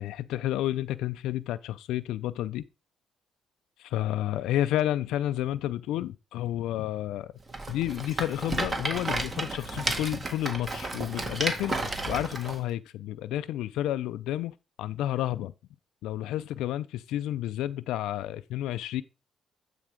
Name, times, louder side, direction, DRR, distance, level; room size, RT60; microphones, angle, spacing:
voice 1, 0.0-2.6 3.8-7.3 7.7-15.5 16.0-19.0, left 13 dB, 90° left, 0.3 m, -31 dB
Rattle, 7.5-12.6, right 2 dB, 35° right, 1.6 m, -32 dB
8.8 x 3.4 x 5.0 m
cardioid pair, 90°, 0 cm